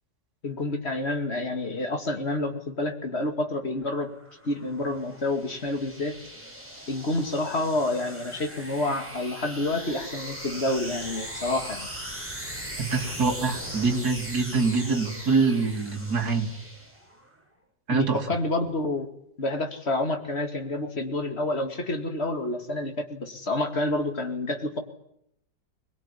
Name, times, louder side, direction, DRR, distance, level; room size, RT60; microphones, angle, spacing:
voice 1, 0.4-4.1 4.4-6.2 6.9-11.9 17.9-19.1 19.4-24.8, left 2 dB, 35° left, 6 dB, 2.5 m, -28 dB
sound 1, 3.8-17.3, equal, 5° right, 5.0 m, -39 dB
voice 2, 12.8-16.5 17.9-18.2, right 4 dB, 60° right, 3 dB, 3.2 m, -25 dB
22.5 x 20.5 x 9.9 m, 0.75 s
omnidirectional pair, 1.9 m